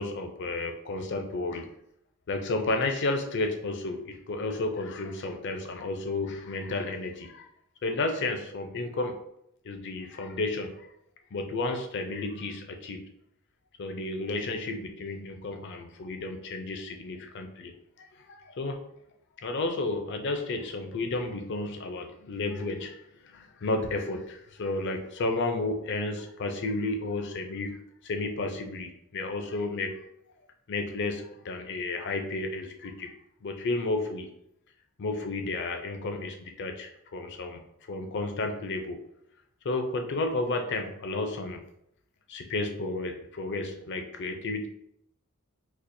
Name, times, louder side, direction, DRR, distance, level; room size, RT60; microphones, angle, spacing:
voice 1, 0.0-1.7 2.3-7.5 7.8-9.2 9.6-10.9 11.3-13.0 13.8-18.8 19.4-30.0 30.7-33.1 33.4-34.3 35.0-37.6 37.9-39.0 39.6-41.6 42.3-44.7, left 2 dB, 55° left, 5 dB, 0.5 m, -32 dB
4.2 x 2.4 x 2.6 m, 0.77 s
head